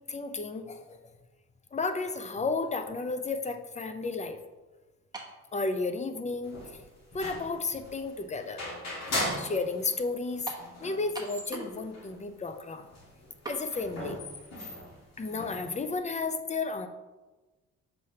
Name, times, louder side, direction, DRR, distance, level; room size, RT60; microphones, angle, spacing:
voice 1, 0.1-1.0 1.7-4.4 5.5-6.8 7.1-8.6 9.3-10.5 10.8-12.9 13.5-14.2 15.2-16.9, left 3 dB, 25° left, 8 dB, 0.5 m, -33 dB
sound 1, 5.1-5.4 6.3-6.4 10.5-10.7 11.1-11.8 12.1-12.2 13.4-13.6, right 3 dB, 15° right, 1.2 m, -39 dB
sound 2, 6.4-10.0 10.3-10.4 10.6-12.1 12.5-12.6 12.8-16.0, left 1 dB, 60° left, 2.0 m, -38 dB
6.9 x 4.8 x 2.9 m, 1.2 s
cardioid pair, 90°, 30 cm